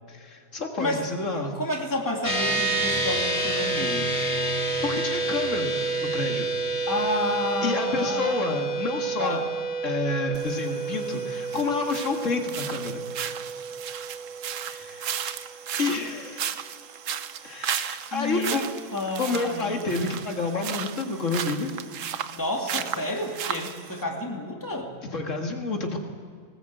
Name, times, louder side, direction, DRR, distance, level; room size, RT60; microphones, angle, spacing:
voice 1, 0.1-1.5 4.8-5.7 6.0-6.5 7.0-7.2 7.6-9.4 9.8-13.0 14.6-15.3 15.7-16.5 17.4-18.6 19.2-21.7 25.1-26.0, left 3 dB, 75° left, 2 dB, 2.3 m, -29 dB
voice 2, 1.4-4.2 6.9-8.6 9.2-9.5 18.1-18.6 18.9-19.8 22.3-24.9, left 1 dB, 15° left, 0 dB, 2.7 m, -30 dB
sound 1, 2.2-15.8, right 3 dB, 40° left, 2.7 m, -29 dB
sound 2, 10.3-24.0, right 8 dB, 85° right, 1.2 m, -35 dB
20.0 x 19.5 x 8.0 m, 2.1 s
omnidirectional pair, 1.3 m